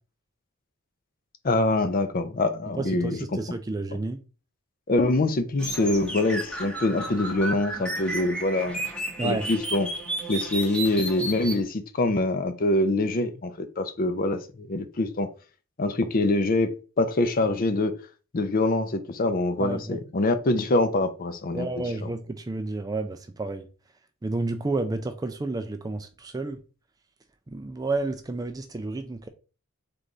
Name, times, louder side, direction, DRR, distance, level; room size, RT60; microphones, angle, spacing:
voice 1, 1.4-3.2 4.9-8.8 9.2-9.9 10.3-15.3 15.8-17.9 18.3-22.1, left 2 dB, 40° left, 0.5 m, -25 dB
voice 2, 2.8-4.2 9.2-9.5 19.6-20.0 21.5-23.7 24.2-26.6 27.5-29.3, right 2 dB, 15° right, 0.3 m, -30 dB
sound 1, 5.6-11.6, right 1 dB, 5° left, 0.9 m, -33 dB
3.8 x 3.4 x 3.9 m
head